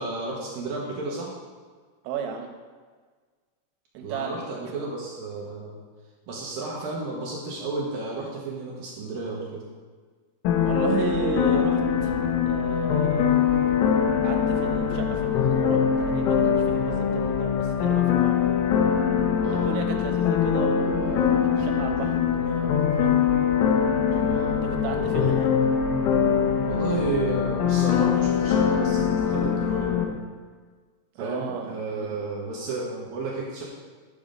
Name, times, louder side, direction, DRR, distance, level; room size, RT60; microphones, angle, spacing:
voice 1, 0.0-1.3 4.0-5.8 6.3-9.6 19.4-19.7 24.1-24.5 24.9-25.3 26.6-30.1 31.2-33.6, right 3 dB, 65° right, -3 dB, 2.3 m, -32 dB
voice 2, 2.1-2.5 4.0-4.3 10.6-12.2 12.5-13.5 14.2-18.6 19.5-23.2 24.6-25.5 31.2-32.1, right 6 dB, 85° right, 3 dB, 3.7 m, -34 dB
sound 1, 10.5-30.1, left 7 dB, 90° left, 3.7 m, -23 dB
12.0 x 7.2 x 5.3 m, 1.5 s
omnidirectional pair, 5.8 m